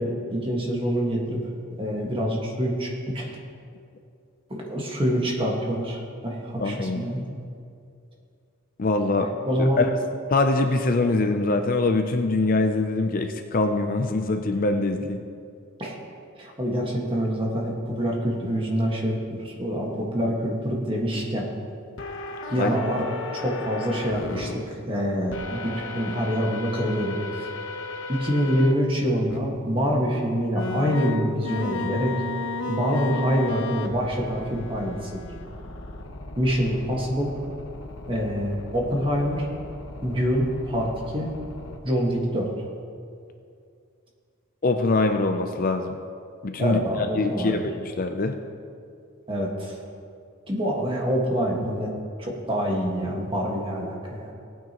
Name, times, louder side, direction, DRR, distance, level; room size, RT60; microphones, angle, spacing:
voice 1, 0.0-1.4 1.8-3.4 4.5-7.2 9.2-9.8 15.8-16.0 16.4-21.5 22.5-27.5 28.1-32.1 32.7-35.3 36.4-37.3 38.1-39.5 40.0-41.3 41.8-42.5 46.6-47.6 49.3-49.8 50.5-51.9 52.2-54.3, equal, 25° right, -2 dB, 1.6 m, -26 dB
voice 2, 6.6-7.0 8.8-9.3 9.8-9.9 10.3-15.2 22.6-22.7 44.6-46.0 46.4-46.8 47.1-48.4, left 3 dB, 40° left, 6 dB, 0.5 m, -23 dB
sound 1, 22.0-24.5 25.3-28.7 29.3-29.4 30.5-41.8, left 3 dB, 55° left, 0.9 m, -35 dB
18.0 x 9.2 x 3.0 m, 2.4 s
head